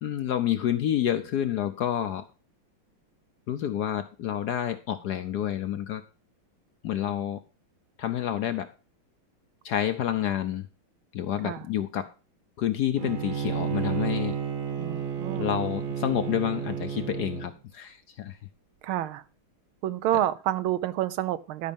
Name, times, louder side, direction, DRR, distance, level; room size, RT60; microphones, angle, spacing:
voice 1, 0.0-2.3 3.5-6.0 6.8-7.4 8.0-8.7 9.6-10.7 11.1-12.1 12.6-14.4 15.4-18.4, left 11 dB, 70° left, 1.0 m, -29 dB
Bowed string instrument, 13.0-17.5, right 7 dB, 45° right, 1.4 m, -31 dB
voice 2, 14.8-15.5 18.8-19.2 19.8-21.7, right 12 dB, 80° right, 1.5 m, -28 dB
12.0 x 5.4 x 5.3 m
omnidirectional pair, 2.3 m